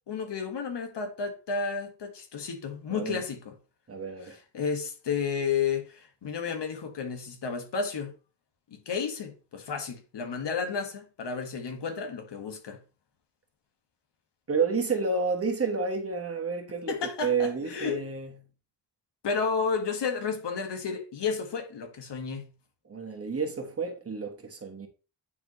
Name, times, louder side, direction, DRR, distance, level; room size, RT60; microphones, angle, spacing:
voice 1, 0.1-3.5 4.2-8.1 8.7-12.8 16.9-18.0 19.2-22.5, left 5 dB, 75° left, 1.7 m, -32 dB
voice 2, 2.9-3.2 3.9-4.4 14.5-18.4 22.8-24.9, right 4 dB, 35° right, 1.4 m, -30 dB
9.4 x 4.9 x 3.1 m
wide cardioid pair, 175°, 42 cm